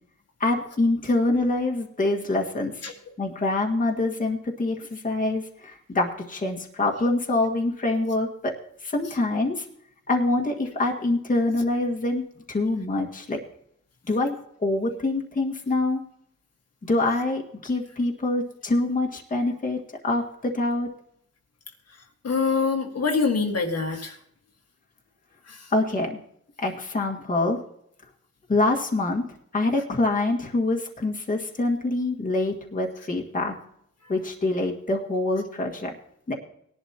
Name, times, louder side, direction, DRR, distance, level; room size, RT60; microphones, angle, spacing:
voice 1, 0.4-2.8 3.2-8.5 8.8-9.6 10.1-12.2 12.5-13.4 14.1-14.4 14.6-16.0 16.8-20.9 25.7-26.2 26.6-27.6 28.5-29.2 29.5-33.6 34.1-35.9 36.3-36.4, left 2 dB, 25° left, 0 dB, 1.8 m, -25 dB
voice 2, 2.8-3.1 9.0-9.2 21.9-24.2 25.4-25.7 34.0-34.2, left 4 dB, 55° left, 2 dB, 1.8 m, -26 dB
19.5 x 11.0 x 2.9 m, 0.70 s
wide cardioid pair, 125°, 30 cm